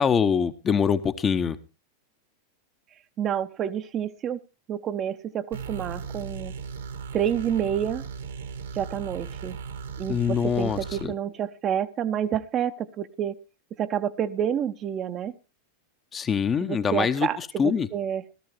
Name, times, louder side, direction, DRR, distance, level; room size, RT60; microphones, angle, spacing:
voice 1, 0.0-1.6 10.1-11.1 16.1-17.9, left 7 dB, 20° left, 10 dB, 0.8 m, -24 dB
voice 2, 3.2-4.4 4.7-6.6 7.1-8.0 8.7-9.6 10.0-13.4 13.8-15.3 16.6-18.2, right 9 dB, 30° right, 10 dB, 0.8 m, -28 dB
sound 1, 5.5-11.1, right 5 dB, 65° right, 1.6 m, -37 dB
16.0 x 13.5 x 3.1 m, 0.29 s
figure-of-eight pair, 90°, 0 cm